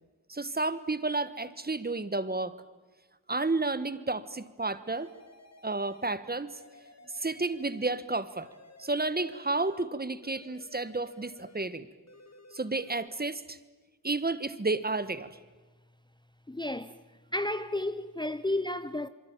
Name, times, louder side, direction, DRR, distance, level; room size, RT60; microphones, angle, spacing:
voice 1, 0.3-2.5 3.3-5.1 5.6-6.6 7.1-8.5 8.8-11.9 12.5-13.6 14.0-15.3, right 3 dB, 25° right, 1.4 m, -31 dB
sound 1, 4.9-6.2 6.5-8.0 8.4-9.9 10.2-11.7 12.1-13.1, left 3 dB, 45° left, 2.3 m, -55 dB
voice 2, 16.5-17.0 17.3-19.1, left 1 dB, 15° left, 0.8 m, -32 dB
27.0 x 23.5 x 8.9 m
wide cardioid pair, 70°, 36 cm